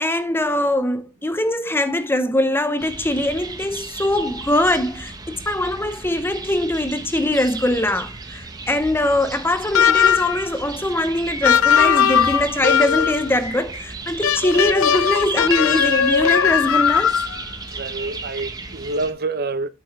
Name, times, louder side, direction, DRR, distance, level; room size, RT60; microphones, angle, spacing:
voice 1, 0.0-17.1, left 1 dB, 10° left, 0.7 m, -22 dB
sound 1, 2.8-19.1, right 3 dB, 20° right, 1.0 m, -34 dB
sound 2, 9.7-10.4 11.4-13.3 14.2-17.4, left 8 dB, 75° left, 0.5 m, -18 dB
voice 2, 17.7-19.7, right 3 dB, 50° right, 0.7 m, -27 dB
9.0 x 6.9 x 3.2 m
head